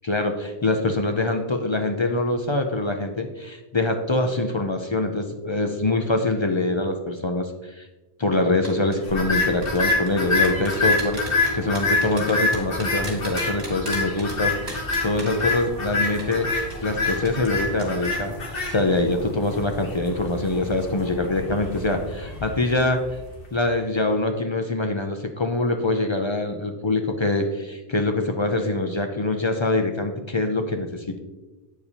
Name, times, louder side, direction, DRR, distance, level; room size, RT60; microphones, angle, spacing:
voice 1, 0.0-7.9 8.2-16.5 16.8-18.3 18.7-23.0 23.5-31.2, left 2 dB, 40° left, 5 dB, 0.5 m, -24 dB
sound 1, 8.6-9.0 9.6-15.9 16.2-16.3 16.7-16.8 17.2-17.5 17.8-18.1 18.4-18.6, right 2 dB, 80° right, 2.3 m, -36 dB
sound 2, 9.1-23.4, left 3 dB, 65° left, 1.4 m, -27 dB
8.3 x 6.7 x 2.8 m, 1.1 s
omnidirectional pair, 1.0 m